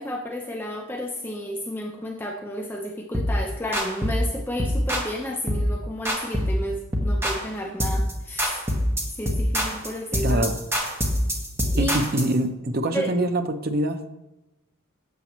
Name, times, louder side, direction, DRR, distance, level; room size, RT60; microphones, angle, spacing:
voice 1, 0.0-8.6 9.2-10.6 11.7-11.9 12.9-13.1, equal, 10° left, 1 dB, 0.4 m, -32 dB
sound 1, 3.1-3.4 3.7-4.2 4.6-5.1 5.5-5.7 6.0-6.6 6.9-7.5 7.8-8.1 8.4-12.3, equal, 10° right, 1.0 m, -24 dB
voice 2, 10.2-10.6 11.8-14.0, right 1 dB, 45° right, 8 dB, 0.5 m, -24 dB
7.4 x 6.8 x 3.0 m, 0.96 s
head